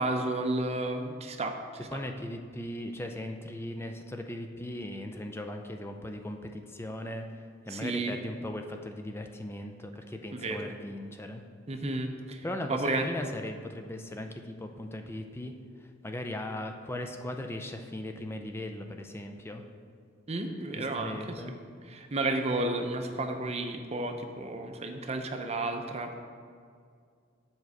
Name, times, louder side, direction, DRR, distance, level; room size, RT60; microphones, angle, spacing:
voice 1, 0.0-1.9 7.7-8.2 10.3-10.7 11.7-13.1 20.3-21.4 21.9-26.2, right 2 dB, 35° right, 5 dB, 0.6 m, -32 dB
voice 2, 1.9-7.3 7.6-11.4 12.4-15.5 16.0-19.6 20.8-21.6, left 1 dB, 10° left, 5 dB, 0.4 m, -38 dB
7.2 x 4.6 x 6.5 m, 2.2 s
head